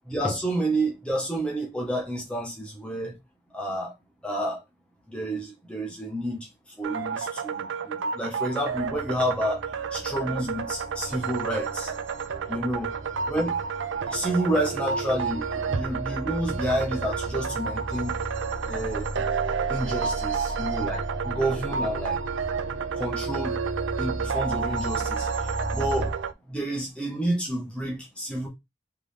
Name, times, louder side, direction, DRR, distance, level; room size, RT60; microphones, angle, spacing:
voice 1, 0.0-3.2 3.5-3.9 4.2-4.6 5.1-6.5 6.8-9.6 9.9-11.9 12.5-12.9 13.2-13.6 14.1-18.2 18.7-19.1 19.7-22.2 22.9-23.6 24.0-26.1 26.5-28.5, right 1 dB, 5° left, 1.4 m, -29 dB
sound 1, 6.8-26.3, right 6 dB, 80° right, 0.5 m, -31 dB
sound 2, 8.7-26.1, equal, 50° right, 0.7 m, -37 dB
3.6 x 3.5 x 3.5 m
head